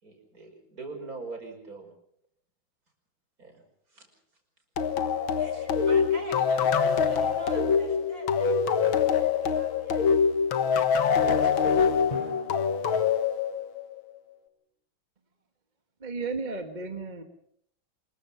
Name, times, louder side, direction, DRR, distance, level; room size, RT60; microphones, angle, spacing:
voice 1, 0.0-1.9 3.4-3.6 3.9-4.1, right 3 dB, 45° right, 4 dB, 5.7 m, -42 dB
sound 1, 4.8-14.0, left 6 dB, 80° left, 2.1 m, -24 dB
voice 2, 5.4-10.3 11.4-11.6, equal, 60° right, 6 dB, 4.8 m, -45 dB
Drum, 12.1-13.9, left 1 dB, 15° left, 5.1 m, -44 dB
voice 3, 16.0-17.2, right 4 dB, 25° right, 5 dB, 1.6 m, -33 dB
25.0 x 21.5 x 5.8 m, 0.67 s
omnidirectional pair, 2.2 m